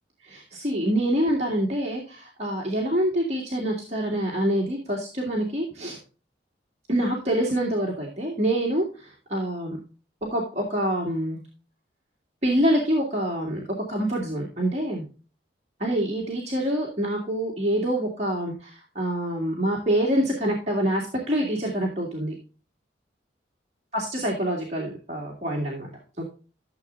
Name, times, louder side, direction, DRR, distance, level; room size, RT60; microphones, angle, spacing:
voice 1, 0.2-6.0 6.9-9.8 10.3-11.4 12.4-15.0 15.8-22.4 23.9-25.9 26.2-26.3, right 1 dB, 35° right, -2 dB, 2.2 m, -26 dB
13.0 x 7.4 x 2.5 m, 0.35 s
head